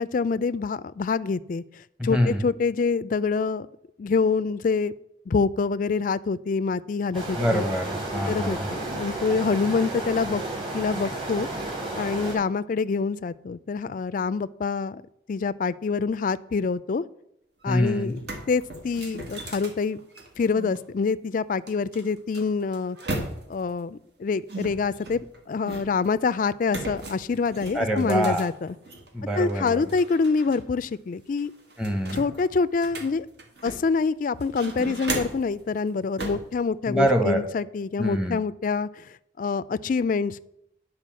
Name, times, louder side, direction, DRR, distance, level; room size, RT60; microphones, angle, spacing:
voice 1, 0.0-1.6 2.0-3.7 4.0-4.9 5.3-7.6 8.3-10.4 10.7-11.5 11.9-15.0 15.3-17.0 17.6-18.2 18.5-20.0 20.4-23.0 23.5-28.8 29.3-31.5 32.1-33.3 33.6-39.0 39.4-40.4, left 4 dB, 45° left, 16 dB, 0.3 m, -26 dB
voice 2, 2.0-2.4 7.4-8.7 17.7-18.2 27.7-28.5 29.1-29.8 31.8-32.2 36.9-37.4 38.0-38.4, equal, 5° right, 5 dB, 1.0 m, -25 dB
sound 1, 7.1-12.3, right 2 dB, 30° right, 3.3 m, -32 dB
sound 2, 17.6-17.7 18.0-20.8 21.7-23.7 24.5-26.1 26.7-29.1 29.5-30.6 30.9-31.0 31.4-34.0 34.4-35.5 36.2-36.5, right 2 dB, 60° right, 1.9 m, -36 dB
10.0 x 4.7 x 7.5 m, 0.78 s
head